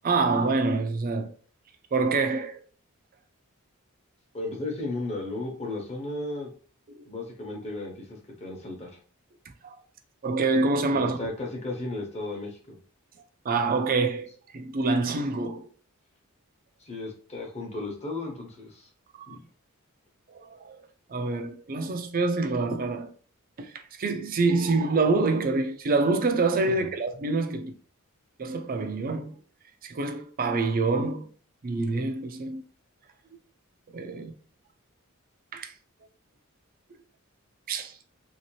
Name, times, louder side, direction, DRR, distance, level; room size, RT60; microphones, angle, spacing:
voice 1, 0.0-1.3 1.9-2.6 6.9-7.0 9.6-9.8 10.2-11.2 13.4-15.7 19.2-19.4 20.3-20.8 21.1-23.1 23.6-23.7 24.0-27.7 28.4-29.4 29.8-31.3 31.6-32.6 33.9-34.3 35.5-35.7 37.7-37.9, right 3 dB, 40° right, 0.4 m, -26 dB
voice 2, 4.3-6.5 7.1-7.9 8.4-8.9 10.9-12.8 16.8-18.9 19.3-19.4 26.8-26.9, left 2 dB, 30° left, 1.0 m, -34 dB
3.1 x 2.8 x 3.0 m
head